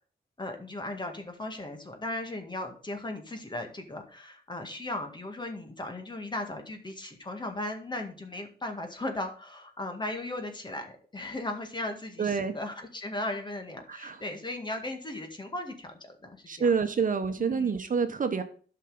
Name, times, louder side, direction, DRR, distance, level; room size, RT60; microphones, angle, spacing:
voice 1, 0.4-16.7 17.4-17.7, left 2 dB, 25° left, 5 dB, 2.0 m, -37 dB
voice 2, 12.2-12.6 13.9-14.2 16.5-18.4, right 5 dB, 50° right, 7 dB, 1.1 m, -27 dB
12.0 x 5.8 x 4.0 m, 0.42 s
wide cardioid pair, 125°, 17 cm